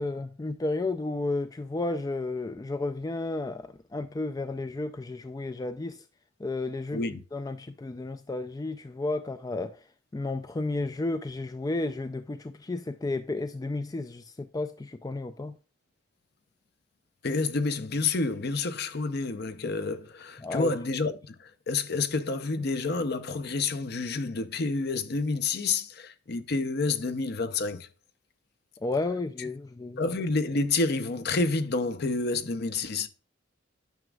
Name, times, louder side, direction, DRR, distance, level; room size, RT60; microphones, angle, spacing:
voice 1, 0.0-6.0 6.4-7.0 7.3-9.8 10.1-15.5 20.4-20.7 28.8-30.0, left 2 dB, 20° left, 0.3 m, -32 dB
voice 2, 17.2-27.9 29.4-29.5 30.0-33.1, left 3 dB, 55° left, 0.7 m, -29 dB
9.3 x 6.0 x 2.3 m
head